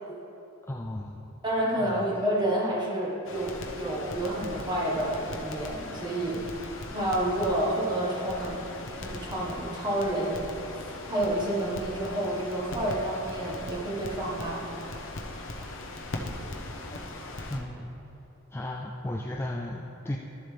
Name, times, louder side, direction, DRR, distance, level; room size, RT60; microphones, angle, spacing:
voice 1, 0.7-1.3 1.8-2.0 16.9-17.9 18.5-20.2, left 1 dB, 10° left, -1 dB, 0.3 m, -35 dB
voice 2, 1.4-6.4 6.9-8.6 9.0-10.4 11.1-14.6, right 1 dB, 20° right, -5 dB, 1.3 m, -29 dB
Crackle, 3.2-17.6, left 2 dB, 60° left, 0.8 m, -39 dB
12.5 x 7.5 x 3.4 m, 2.9 s
head